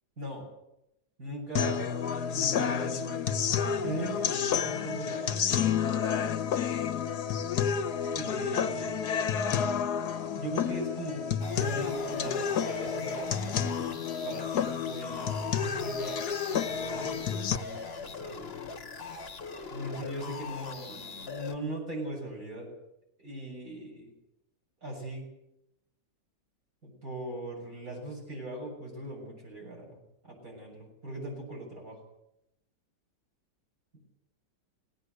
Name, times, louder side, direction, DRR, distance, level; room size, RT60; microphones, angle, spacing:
voice 1, 1.2-3.2 3.8-5.8 8.1-9.0 10.3-11.3 11.6-16.3 16.5-18.4 19.7-22.7 23.2-24.1 24.8-25.3 26.8-32.0, right 1 dB, 50° right, -2 dB, 7.6 m, -40 dB
sound 1, 1.6-17.6, left 7 dB, 65° left, 1.5 m, -30 dB
sound 2, 11.4-21.6, left 4 dB, 40° left, 1.4 m, -41 dB
19.5 x 18.0 x 8.0 m, 0.84 s
omnidirectional pair, 1.9 m